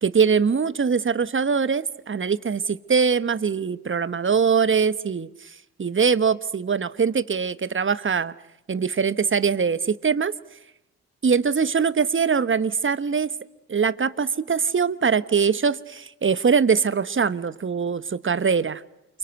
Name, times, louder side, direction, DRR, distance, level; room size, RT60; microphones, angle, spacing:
voice 1, 0.0-5.5 5.8-8.3 8.7-10.3 11.2-13.3 13.7-18.8, right 6 dB, 35° right, 1.2 m, -22 dB
29.0 x 23.5 x 8.0 m
hypercardioid pair, 45°, 36 cm